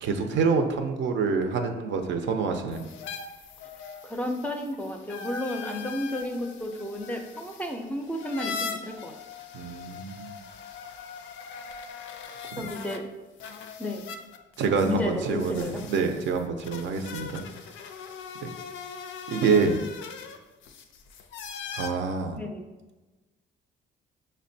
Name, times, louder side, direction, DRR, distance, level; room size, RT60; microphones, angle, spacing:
voice 1, 0.0-2.8 9.5-10.4 12.5-12.7 14.6-17.4 18.4-18.5 19.3-19.8 21.7-22.4, right 5 dB, 70° right, 5 dB, 0.5 m, -26 dB
sound 1, 2.7-13.0 13.4-21.9, left 5 dB, 75° left, 0.4 m, -41 dB
voice 2, 4.0-9.1 12.6-13.1 13.8-14.0 14.8-15.8 22.4-22.6, left 1 dB, 5° left, 3 dB, 0.4 m, -32 dB
5.2 x 2.1 x 2.6 m, 1.2 s
cardioid pair, 90°, 20 cm